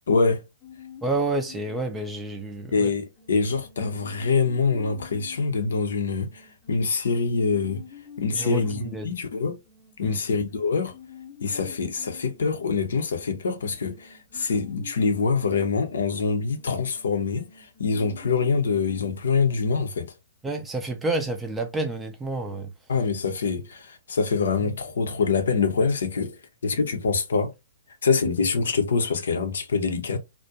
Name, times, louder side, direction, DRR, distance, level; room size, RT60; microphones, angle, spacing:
voice 1, 0.1-0.4 2.7-7.8 8.2-9.6 10.0-10.9 11.4-20.1 22.9-26.4 26.6-27.5 28.0-30.2, left 4 dB, 60° left, 0.6 m, -25 dB
sound 1, 0.6-19.1, left 8 dB, 15° left, 0.8 m, -47 dB
voice 2, 1.0-2.9 8.3-9.1 10.0-10.2 20.4-22.7, right 2 dB, 10° right, 0.4 m, -29 dB
2.4 x 2.1 x 2.7 m
figure-of-eight pair, 120°, 0 cm